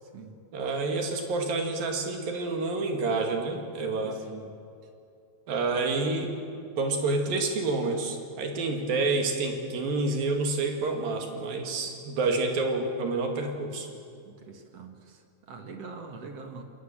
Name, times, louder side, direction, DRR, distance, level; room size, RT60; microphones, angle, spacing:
voice 1, 0.0-0.4 4.0-4.5 14.3-16.6, right 4 dB, 50° right, 5 dB, 2.2 m, -44 dB
voice 2, 0.5-4.2 5.5-6.3 6.8-13.9, right 3 dB, 70° right, 3 dB, 4.1 m, -28 dB
28.0 x 20.5 x 7.6 m, 2.5 s
omnidirectional pair, 4.3 m